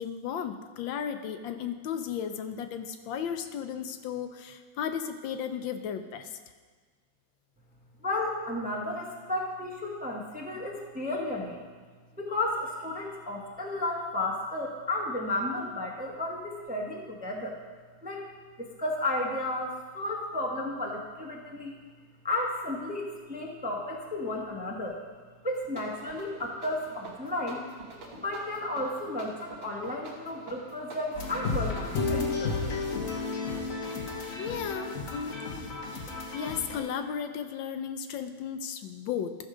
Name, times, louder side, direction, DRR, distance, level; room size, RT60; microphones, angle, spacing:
voice 1, 0.0-6.4 34.4-35.6 36.3-39.3, left 8 dB, 75° left, 8 dB, 1.3 m, -35 dB
voice 2, 8.0-11.6 12.1-17.6 18.0-18.2 18.6-21.7 22.2-25.0 25.4-27.6 28.1-32.7, left 1 dB, 5° right, -1 dB, 0.7 m, -33 dB
sound 1, 25.4-35.8, right 2 dB, 70° right, 2.2 m, -48 dB
sound 2, 31.1-36.8, left 4 dB, 45° left, 1.4 m, -33 dB
13.5 x 6.3 x 4.9 m, 1.5 s
omnidirectional pair, 2.2 m